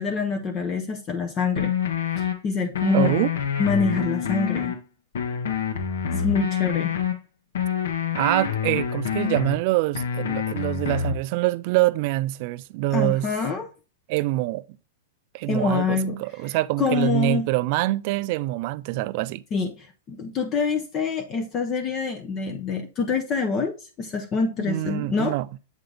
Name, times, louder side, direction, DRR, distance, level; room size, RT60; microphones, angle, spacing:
voice 1, 0.0-1.7 2.2-3.2 3.6-4.7 6.1-6.9 12.9-13.7 15.4-16.2 16.8-17.5 19.5-25.4, left 4 dB, 20° left, 0.6 m, -26 dB
sound 1, 1.6-2.3 2.7-4.8 5.1-7.1 7.5-9.6 9.9-11.2, left 7 dB, 80° left, 1.3 m, -26 dB
voice 2, 2.9-3.3 8.1-13.3 14.1-14.7 15.3-19.4 24.7-25.5, right 17 dB, 40° right, 0.3 m, -25 dB
7.9 x 3.8 x 3.3 m
supercardioid pair, 160°, 0 cm